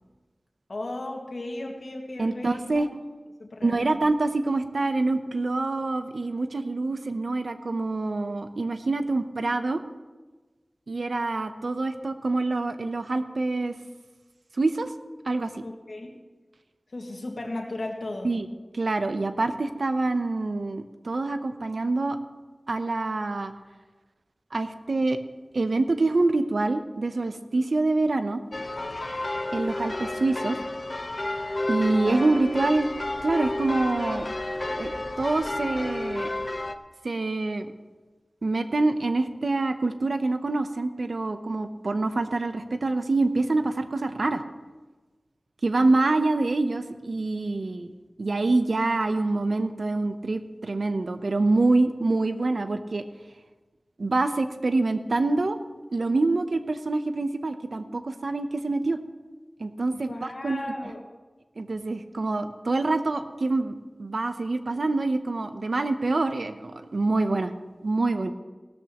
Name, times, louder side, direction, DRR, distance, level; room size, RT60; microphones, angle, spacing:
voice 1, 0.7-2.8 3.4-3.9 15.6-16.2 16.9-18.4 59.9-61.0, left 2 dB, 80° left, 1 dB, 1.8 m, -36 dB
voice 2, 2.2-2.9 3.6-9.8 10.9-13.8 14.6-14.9 15.2-15.6 18.2-18.5 18.7-22.2 22.7-23.5 24.5-25.2 25.5-28.4 29.5-30.6 31.7-32.9 33.2-34.3 34.7-36.3 37.0-37.7 38.4-44.4 45.6-47.9 48.2-53.0 54.0-55.6 55.9-59.0 59.6-60.6 61.6-67.5 67.8-68.3, right 2 dB, 85° right, 9 dB, 0.7 m, -26 dB
sound 1, 28.5-36.7, left 2 dB, 45° left, 0.7 m, -31 dB
16.5 x 13.5 x 3.0 m, 1.3 s
wide cardioid pair, 50°, 0 cm